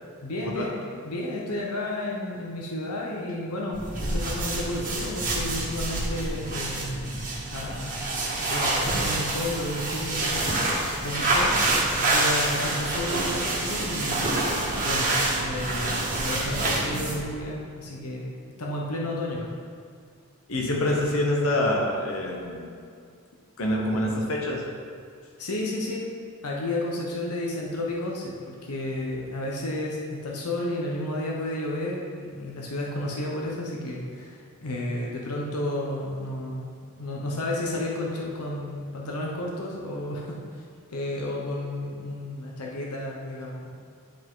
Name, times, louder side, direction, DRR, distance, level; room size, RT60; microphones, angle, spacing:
voice 1, 0.2-0.7 1.0-7.2 7.5-10.5 11.0-11.5 11.9-14.3 14.8-15.1 15.4-19.5 25.4-26.1 26.4-40.6 40.9-43.7, left 1 dB, 85° left, -2 dB, 1.0 m, -32 dB
sound 1, 3.7-17.3, right 2 dB, 35° right, 1.8 m, -27 dB
voice 2, 20.5-22.7 23.6-24.6, left 1 dB, 65° left, -1 dB, 1.1 m, -26 dB
10.5 x 5.1 x 3.8 m, 2.3 s
head